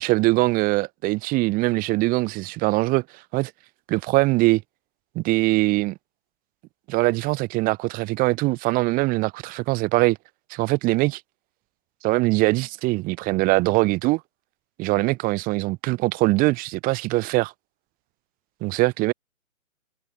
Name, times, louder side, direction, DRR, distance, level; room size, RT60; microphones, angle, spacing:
voice 1, 0.0-3.0 3.3-3.5 3.9-4.6 5.1-6.0 6.9-10.2 10.5-11.2 12.0-14.2 14.8-17.5 18.6-19.1, right 21 dB, 20° right, 6.7 m, -22 dB
figure-of-eight pair, 145°, 41 cm